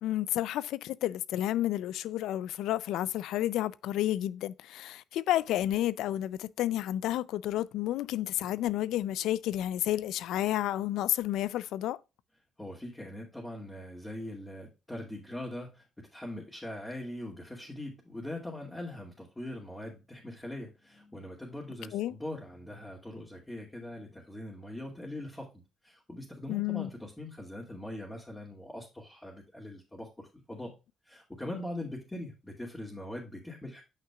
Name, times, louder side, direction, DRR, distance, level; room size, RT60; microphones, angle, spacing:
voice 1, 0.0-12.0 21.9-22.1 26.5-26.9, left 13 dB, 85° left, 0.4 m, -31 dB
voice 2, 12.6-25.5 25.8-30.7 31.0-33.8, left 1 dB, 10° left, 2.4 m, -41 dB
8.9 x 5.7 x 2.3 m
cardioid pair, 90°, 0 cm